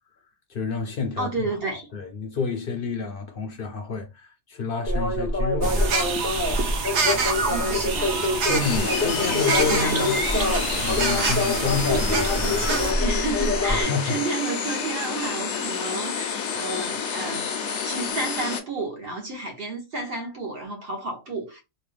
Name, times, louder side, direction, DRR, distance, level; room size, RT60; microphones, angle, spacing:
voice 1, 0.5-1.6 1.9-6.0 8.5-10.1 10.8-12.7 13.7-14.2 16.5-16.7, left 4 dB, 60° left, 0.7 m, -29 dB
voice 2, 1.2-1.9 7.5-8.1 8.7-8.9 9.2-9.9 10.3-10.5 11.8-17.5 17.8-21.6, right 2 dB, 55° right, 1.3 m, -31 dB
sound 1, 4.9-13.8, left 2 dB, 15° left, 0.7 m, -26 dB
sound 2, 5.6-12.9, right 4 dB, 85° right, 1.0 m, -27 dB
sound 3, 8.6-18.6, left 6 dB, 80° left, 1.0 m, -29 dB
3.2 x 2.3 x 3.2 m
omnidirectional pair, 1.2 m